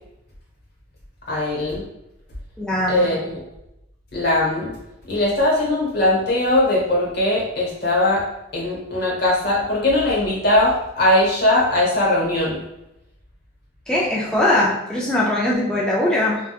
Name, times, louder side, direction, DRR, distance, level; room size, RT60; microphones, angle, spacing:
voice 1, 1.3-1.8 2.9-3.4 4.1-4.7 5.1-8.2 8.5-12.6, left 1 dB, 55° left, -5 dB, 0.9 m, -20 dB
voice 2, 2.6-3.1 13.9-16.4, left 1 dB, 5° left, -6 dB, 0.3 m, -20 dB
2.8 x 2.2 x 2.3 m, 0.87 s
head